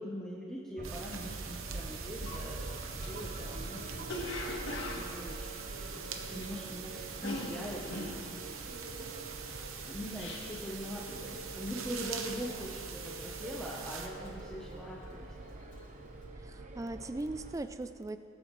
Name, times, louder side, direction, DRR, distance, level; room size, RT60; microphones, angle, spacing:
voice 1, 0.0-8.9 9.8-15.3, equal, 5° left, -5 dB, 0.9 m, -43 dB
sound 1, 0.8-17.6, right 2 dB, 35° right, 0.6 m, -45 dB
sound 2, 0.8-14.1, right 7 dB, 85° right, 0.9 m, -44 dB
Cough, 1.8-1.9 2.2-6.7 6.9-10.8 11.1-11.4 11.7-12.2 12.6-13.2 13.5-15.2 15.5-15.8, left 2 dB, 70° left, 1.6 m, -42 dB
voice 2, 16.4-18.2, right 2 dB, 15° right, 11 dB, 0.3 m, -39 dB
20.5 x 8.9 x 3.2 m, 2.6 s
head